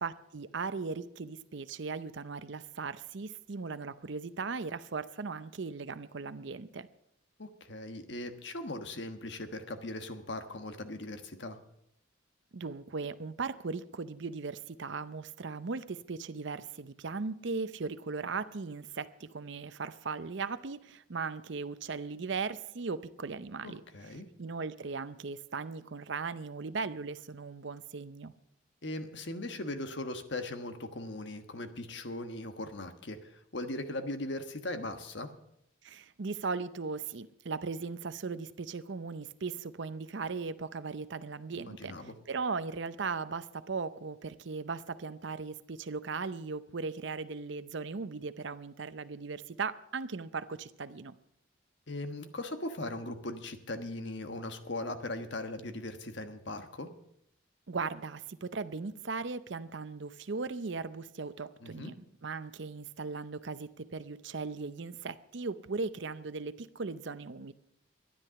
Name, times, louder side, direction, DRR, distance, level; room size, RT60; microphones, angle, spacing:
voice 1, 0.0-6.9 12.5-28.3 35.8-51.2 57.7-61.9 62.2-67.5, right 4 dB, 60° right, 0.6 m, -38 dB
voice 2, 7.4-11.6 23.6-24.3 28.8-35.3 41.5-42.1 51.9-56.9 61.6-61.9, left 2 dB, 60° left, 1.3 m, -39 dB
13.0 x 10.5 x 6.9 m
head